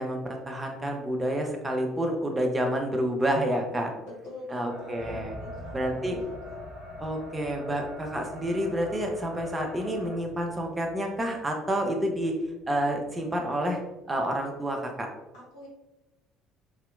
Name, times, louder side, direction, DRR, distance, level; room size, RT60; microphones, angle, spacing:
voice 1, 0.0-3.9 4.5-5.4 5.7-6.2 7.0-12.3 12.7-13.8 14.1-15.1, right 1 dB, 20° right, 2 dB, 0.5 m, -29 dB
voice 2, 4.0-6.6 15.3-15.7, left 2 dB, 60° left, -4 dB, 0.9 m, -45 dB
sound 1, 4.7-10.2, left 1 dB, 50° right, 0.9 m, -44 dB
sound 2, 4.9-13.8, left 1 dB, 30° left, 1.2 m, -48 dB
2.7 x 2.1 x 2.4 m, 1.0 s
figure-of-eight pair, 55°, 0 cm